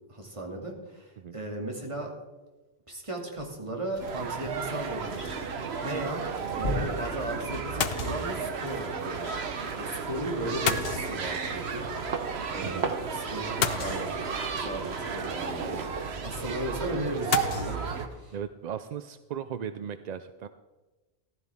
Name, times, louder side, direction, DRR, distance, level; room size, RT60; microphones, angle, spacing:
voice 1, 0.1-2.1 2.9-5.4 5.8-9.4 9.7-11.9 12.5-14.3 14.5-15.8 16.2-18.3, right 1 dB, 30° right, 0 dB, 2.3 m, -36 dB
sound 1, 3.2-15.8 16.3-16.4, left 1 dB, 30° left, 3.9 m, -43 dB
sound 2, 4.0-18.1, right 5 dB, 75° right, 1.3 m, -33 dB
sound 3, 4.9-5.1 7.8-8.5 10.7-11.6 13.6-14.5 17.3-17.8, left 8 dB, 65° left, 0.9 m, -31 dB
voice 2, 18.3-20.5, right 8 dB, 55° right, 11 dB, 0.5 m, -37 dB
15.0 x 12.5 x 3.5 m, 1.2 s
omnidirectional pair, 1.1 m